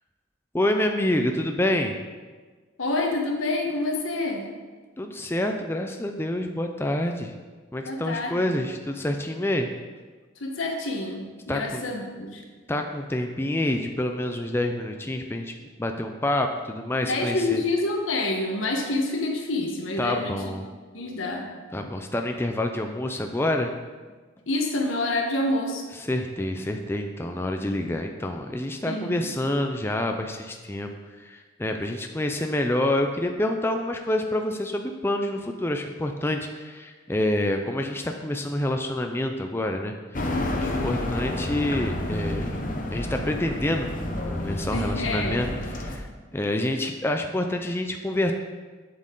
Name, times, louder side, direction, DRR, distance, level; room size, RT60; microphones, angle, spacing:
voice 1, 0.5-2.0 5.0-7.3 7.7-9.7 11.5-11.8 12.7-15.5 15.8-17.6 20.0-20.7 21.7-23.7 26.1-30.9 31.2-40.2 40.6-42.6 42.9-45.5 46.0-46.1 46.3-48.3, left 1 dB, 10° left, 4 dB, 0.4 m, -27 dB
voice 2, 2.8-4.4 7.8-8.5 10.4-12.4 17.1-20.3 20.9-21.5 24.5-25.9 28.9-29.3 44.7-45.6, left 2 dB, 85° left, 2 dB, 1.3 m, -27 dB
sound 1, 40.1-46.0, left 1 dB, 45° left, 0.9 m, -30 dB
8.6 x 7.2 x 3.8 m, 1.4 s
head